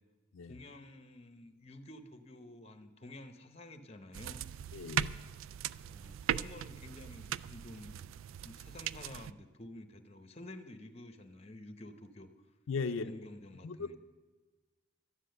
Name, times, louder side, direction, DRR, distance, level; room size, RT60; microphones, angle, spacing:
voice 1, 0.5-4.4 5.8-8.0 8.4-12.3 12.9-14.0, left 1 dB, 30° left, 8 dB, 0.8 m, -50 dB
sound 1, 4.1-9.3, right 10 dB, 80° right, 0.3 m, -39 dB
voice 2, 4.7-5.1 12.7-13.2 13.6-14.0, left 4 dB, 80° left, 8 dB, 0.4 m, -37 dB
12.5 x 9.9 x 6.6 m, 1.3 s
head